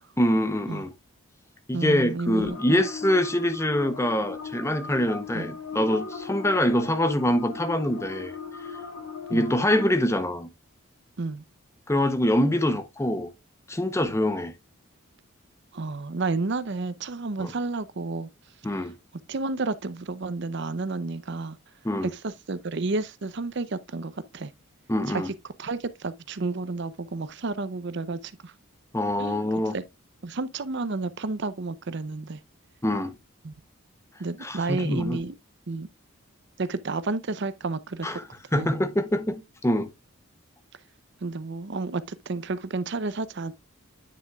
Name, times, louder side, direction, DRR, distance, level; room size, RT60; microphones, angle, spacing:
voice 1, 0.2-0.9 1.7-8.3 9.3-10.5 11.9-13.3 13.7-14.5 17.4-17.5 18.6-18.9 21.8-22.1 24.9-25.3 28.9-29.7 32.8-33.1 34.4-35.2 38.0-38.2 38.5-39.9, left 1 dB, 15° left, 0.7 m, -24 dB
voice 2, 1.7-2.9 5.3-5.5 9.3-9.5 11.2-11.4 15.7-18.3 19.3-21.6 22.1-24.5 25.1-25.3 25.6-28.5 29.2-29.4 29.7-29.8 30.2-32.4 33.4-33.5 34.2-35.3 35.7-35.9 36.6-38.2 38.5-38.8 41.2-43.5, right 3 dB, 55° right, 0.6 m, -31 dB
sound 1, 2.5-9.8, left 5 dB, 85° left, 2.9 m, -38 dB
9.8 x 6.3 x 2.3 m
head